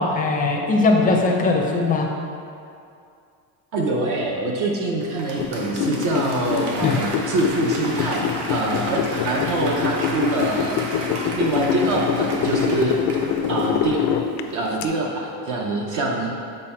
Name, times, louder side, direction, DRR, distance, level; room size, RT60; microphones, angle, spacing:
voice 1, 0.0-2.1 6.8-7.0, left 3 dB, 20° left, 1 dB, 0.5 m, -20 dB
voice 2, 3.7-13.0 13.5-14.0 14.5-16.3, right 2 dB, 50° right, -1 dB, 0.7 m, -24 dB
Applause / Crowd, 5.0-14.4 14.8-14.9, right 2 dB, 85° right, 1.4 m, -33 dB
sound 1, 5.4-14.9, left 8 dB, 80° left, 0.6 m, -25 dB
7.6 x 4.3 x 4.4 m, 2.4 s
cardioid pair, 175°, 41 cm